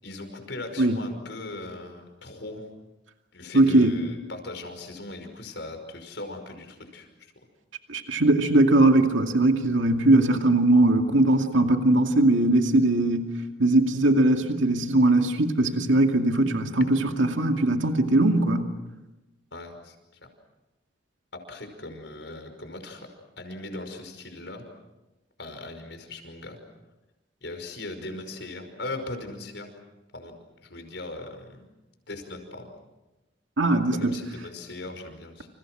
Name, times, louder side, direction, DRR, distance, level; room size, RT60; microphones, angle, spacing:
voice 1, 0.0-2.6 3.3-7.1 19.5-20.0 21.3-23.1 23.4-24.6 25.4-26.6 27.4-29.7 30.1-30.4 30.6-31.7 32.1-32.7 33.9-35.5, left 2 dB, 70° left, 6 dB, 5.5 m, -39 dB
voice 2, 3.5-4.0 7.9-13.3 13.6-18.7 33.6-34.1, right 2 dB, 85° right, 4 dB, 2.4 m, -20 dB
29.5 x 28.5 x 6.3 m, 1.0 s
head